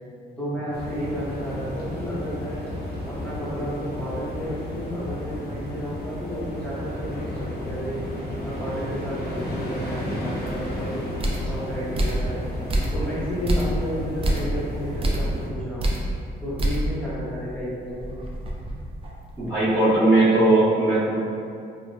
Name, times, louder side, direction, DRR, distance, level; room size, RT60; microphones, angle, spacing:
voice 1, 0.4-2.7 3.0-8.0 8.4-12.4 12.9-15.9 16.4-18.2, equal, 5° left, -9 dB, 0.9 m, -32 dB
sound 1, 0.7-15.5, left 1 dB, 50° left, 0.7 m, -33 dB
sound 2, 10.5-10.6 11.2-11.5 11.9-12.3 12.7-13.1 13.5-13.8 14.2-14.5 15.0-15.3 15.8-16.1 16.6-16.9 17.3-17.4 17.9-19.4, right 1 dB, 30° right, 0.4 m, -25 dB
voice 2, 19.4-21.1, right 2 dB, 10° right, -18 dB, 1.3 m, -18 dB
2.7 x 2.1 x 2.3 m, 2.3 s
cardioid pair, 90°, 20 cm